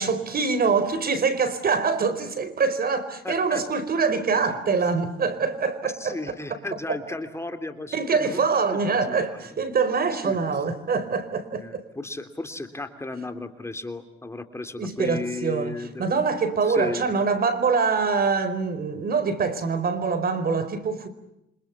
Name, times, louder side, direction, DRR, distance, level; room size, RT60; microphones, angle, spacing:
voice 1, 0.0-6.2 7.9-11.8 14.8-15.7 16.0-21.1, right 5 dB, 50° right, 4.6 m, -24 dB
voice 2, 3.2-3.6 4.3-4.6 5.8-9.6 10.2-10.4 11.5-16.2 16.6-17.1, left 2 dB, 15° left, 3.2 m, -35 dB
29.0 x 26.0 x 7.3 m
cardioid pair, 90°, 20 cm